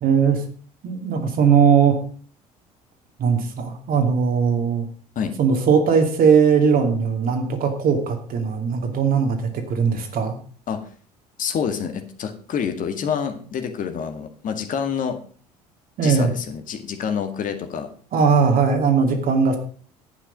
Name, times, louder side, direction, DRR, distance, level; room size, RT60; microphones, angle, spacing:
voice 1, 0.0-0.4 0.8-2.0 3.2-4.9 5.4-10.4 16.0-16.3 18.1-19.6, right 6 dB, 45° right, 5 dB, 2.6 m, -19 dB
voice 2, 11.4-15.2 16.0-17.9, left 7 dB, 40° left, 6 dB, 1.9 m, -27 dB
11.0 x 9.0 x 5.2 m, 0.44 s
figure-of-eight pair, 60°, 20 cm